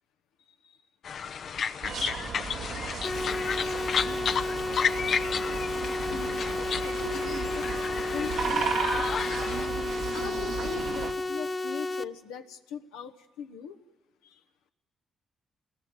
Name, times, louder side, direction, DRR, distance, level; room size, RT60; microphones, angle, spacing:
sound 1, 1.0-9.7, left 7 dB, 65° left, 0.8 m, -32 dB
sound 2, 1.8-11.1, right 5 dB, 85° right, 2.4 m, -35 dB
sound 3, 3.0-12.0, left 2 dB, 40° left, 1.4 m, -32 dB
voice 1, 6.1-7.6 8.1-9.4 10.1-13.8 14.2-14.4, left 7 dB, 90° left, 4 dB, 1.1 m, -41 dB
28.0 x 18.5 x 8.1 m, 1.2 s
hypercardioid pair, 50°, 0 cm